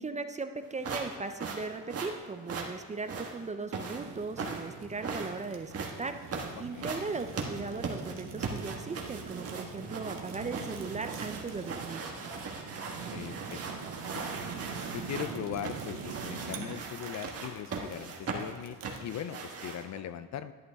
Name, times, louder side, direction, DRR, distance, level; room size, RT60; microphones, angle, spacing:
voice 1, 0.0-6.2 6.6-12.0, right 3 dB, 20° right, 8 dB, 0.5 m, -38 dB
sound 1, 0.8-20.0, right 4 dB, 35° right, 1.5 m, -39 dB
Fire, 3.9-19.1, right 6 dB, 50° right, 1.3 m, -44 dB
voice 2, 13.1-13.6 14.1-14.3 14.9-20.5, left 10 dB, 45° left, 13 dB, 0.5 m, -39 dB
11.0 x 11.0 x 3.6 m, 1.4 s
cardioid pair, 115°, 40 cm